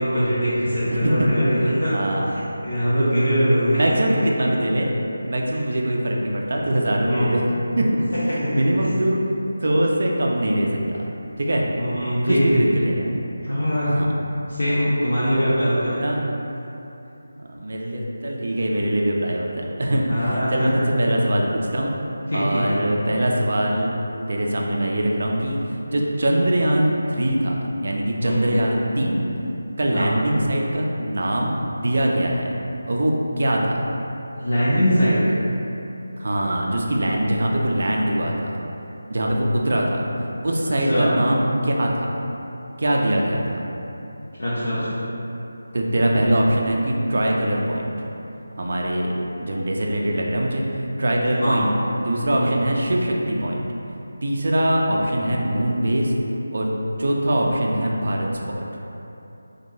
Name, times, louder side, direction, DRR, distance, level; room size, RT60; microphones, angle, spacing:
voice 1, 0.0-1.9 2.3-3.8 7.1-7.3 8.4-8.9 11.8-12.6 13.4-13.9 14.5-16.1 20.1-20.7 22.3-22.7 28.2-28.5 29.9-30.2 34.3-35.2 40.9-41.1 44.4-45.0 51.4-51.7 52.3-52.6, equal, 65° left, -11 dB, 0.6 m, -22 dB
voice 2, 1.6-2.3 3.7-4.9 5.3-7.4 7.8-9.2 9.6-11.1 11.4-11.6 12.2-13.1 13.9-14.1 15.3-15.6 15.9-16.2 17.5-21.9 22.3-24.0 24.3-29.3 29.8-32.5 32.9-33.9 36.2-38.5 39.1-40.0 40.4-42.1 42.8-43.6 45.7-47.9 48.6-51.7 52.0-53.7 54.2-56.1 56.5-56.7 57.0-58.6, right 1 dB, 50° right, -1 dB, 0.3 m, -22 dB
2.5 x 2.2 x 3.0 m, 2.9 s
figure-of-eight pair, 160°, 0 cm